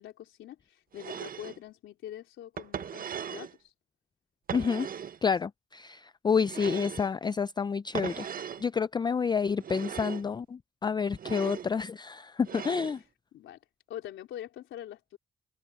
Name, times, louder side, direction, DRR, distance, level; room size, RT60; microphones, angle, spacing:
voice 1, 0.0-3.7 12.5-12.6 13.3-13.6 13.9-15.2, left 11 dB, 80° left, 3.7 m, -44 dB
sound 1, 0.9-1.6 2.6-3.5 4.5-5.2 6.4-7.1 7.9-8.6 9.6-10.3 11.1-11.7 12.4-13.0, right 8 dB, 45° right, 0.8 m, -38 dB
voice 2, 4.5-4.9 5.2-8.3 8.6-13.0, left 6 dB, 20° left, 0.4 m, -29 dB
open air
cardioid pair, 90°, 20 cm